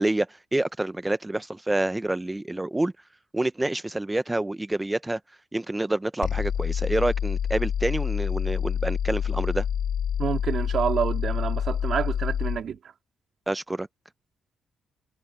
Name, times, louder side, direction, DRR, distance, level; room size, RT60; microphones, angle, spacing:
voice 1, 0.0-2.9 3.3-5.2 5.5-9.6 13.5-13.9, right 2 dB, 10° right, 0.8 m, -27 dB
sound 1, 6.2-12.6, left 8 dB, 65° left, 3.3 m, -27 dB
voice 2, 10.2-12.8, right 8 dB, 60° right, 2.8 m, -28 dB
cardioid pair, 90°, 0 cm